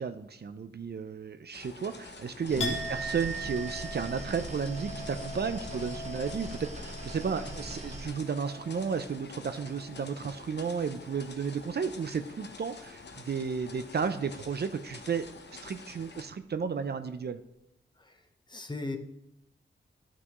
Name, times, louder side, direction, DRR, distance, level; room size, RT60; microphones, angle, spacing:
voice 1, 0.0-15.3 15.6-17.4, right 6 dB, 55° right, 9 dB, 0.6 m, -33 dB
sound 1, 1.5-16.2, left 4 dB, 60° left, 0.9 m, -48 dB
sound 2, 2.5-8.1, right 2 dB, 35° right, 1.2 m, -41 dB
Chink clink, 2.6-10.3 10.6-11.3, right 1 dB, 85° left, 1.7 m, -41 dB
voice 2, 18.5-19.0, left 2 dB, 20° left, 7 dB, 1.0 m, -35 dB
12.0 x 6.1 x 3.1 m, 0.84 s
wide cardioid pair, 80°, 20 cm